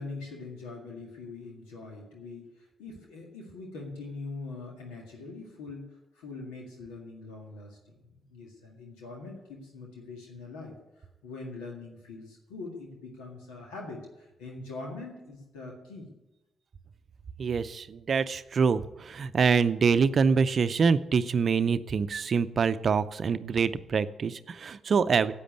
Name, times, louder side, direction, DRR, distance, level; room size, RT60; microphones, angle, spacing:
voice 1, 0.0-10.8 11.2-16.1, left 3 dB, 80° left, 0 dB, 1.9 m, -43 dB
voice 2, 17.4-25.3, right 5 dB, 55° right, 14 dB, 0.6 m, -25 dB
10.0 x 8.4 x 9.5 m, 0.99 s
hypercardioid pair, 40°, 0 cm